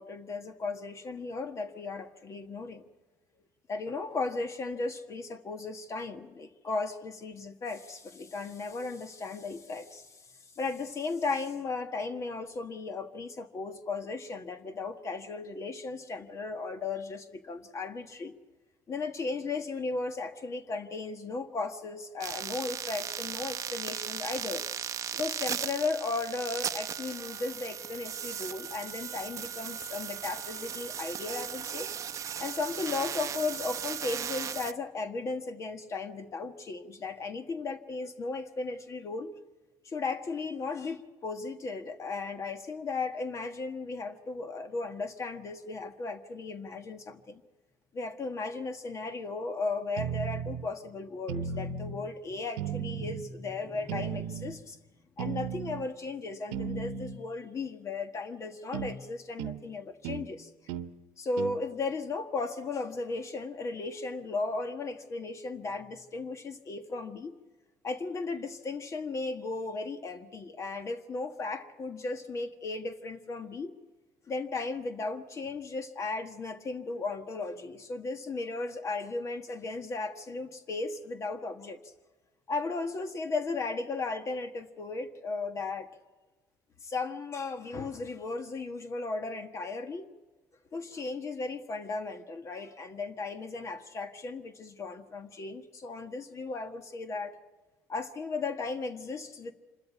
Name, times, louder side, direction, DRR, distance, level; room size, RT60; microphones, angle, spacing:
voice 1, 0.0-2.8 3.7-10.2 10.5-18.3 18.9-24.7 25.1-31.9 32.4-39.3 39.8-47.4 47.9-54.8 55.2-60.5 61.2-67.3 67.8-73.8 74.3-81.8 82.5-85.9 86.8-90.1 90.7-97.4 97.9-99.5, left 3 dB, 40° left, 8 dB, 1.5 m, -36 dB
sound 1, 22.2-34.7, right 8 dB, 45° right, 0.7 m, -37 dB
sound 2, 50.0-50.7 51.3-52.0 52.6-53.3 53.9-54.6 55.2-55.9 56.5-57.2 58.7-58.9 59.4-59.6 60.0-60.3 60.7-60.9 61.4-61.6, right 7 dB, 80° right, 1.0 m, -35 dB
26.5 x 13.5 x 8.5 m, 1.2 s
supercardioid pair, 80°, 8 cm